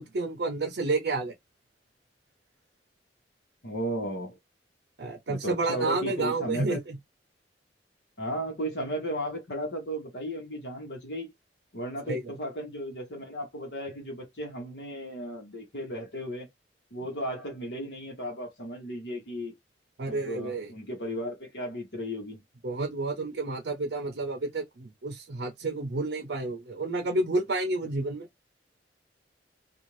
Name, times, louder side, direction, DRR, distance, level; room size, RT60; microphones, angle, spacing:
voice 1, 0.0-1.3 5.0-7.0 12.1-12.2 20.0-20.7 22.6-28.3, right 2 dB, 70° right, 0.6 m, -30 dB
voice 2, 3.6-4.4 5.3-6.8 8.2-11.3 11.7-16.5 16.9-19.5 20.0-22.4, equal, 70° left, 1.1 m, -35 dB
2.6 x 2.4 x 3.1 m
head